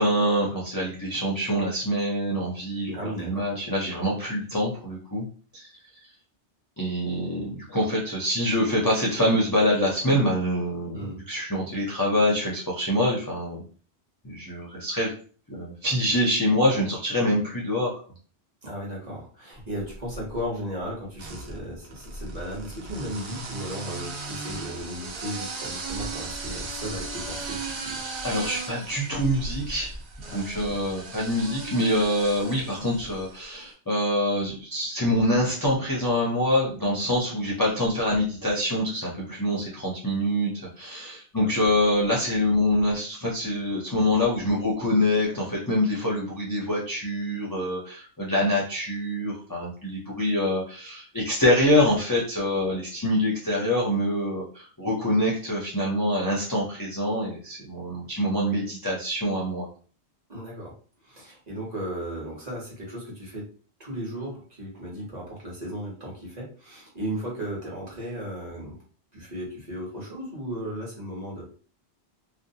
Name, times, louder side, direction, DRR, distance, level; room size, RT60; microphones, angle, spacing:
voice 1, 0.0-5.3 5.5-5.7 6.8-13.6 14.2-15.1 15.5-17.9 28.2-29.9 30.3-59.7, left 1 dB, 25° left, -4 dB, 0.4 m, -25 dB
voice 2, 2.9-3.4 10.9-11.2 18.6-28.1 30.2-30.4 41.3-41.5 60.3-60.7 61.0-63.5 63.8-68.8 69.1-71.4, equal, 40° right, -5 dB, 1.0 m, -35 dB
sound 1, 19.8-20.5 21.2-33.5, right 3 dB, 65° right, 0.8 m, -37 dB
2.5 x 2.0 x 2.7 m, 0.41 s
omnidirectional pair, 1.1 m